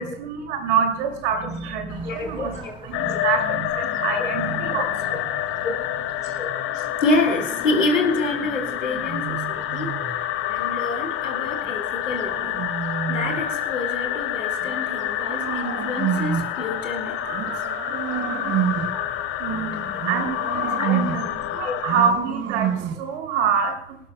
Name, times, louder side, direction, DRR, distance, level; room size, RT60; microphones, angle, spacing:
voice 1, 0.0-5.6 18.8-20.6 20.9-24.0, right 6 dB, 60° right, 3 dB, 2.6 m, -27 dB
sound 1, 1.9-20.7, right 2 dB, 15° right, 2.5 m, -41 dB
voice 2, 2.0-2.7 3.1-3.2 4.2-4.3 4.8-4.9 5.6-5.8 6.2-10.0 10.5-12.5 13.1-17.5 20.8-21.0 21.6-21.8, left 2 dB, 80° left, 4 dB, 2.1 m, -27 dB
sound 2, 2.9-22.1, left 14 dB, 35° left, 0.6 m, -28 dB
sound 3, 4.4-6.8 8.4-10.2 11.6-13.6 14.6-16.6 17.3-19.1 20.0-21.4 21.8-23.1, right 9 dB, 30° right, 0.9 m, -30 dB
23.0 x 12.5 x 2.2 m, 0.78 s
figure-of-eight pair, 70°, 38 cm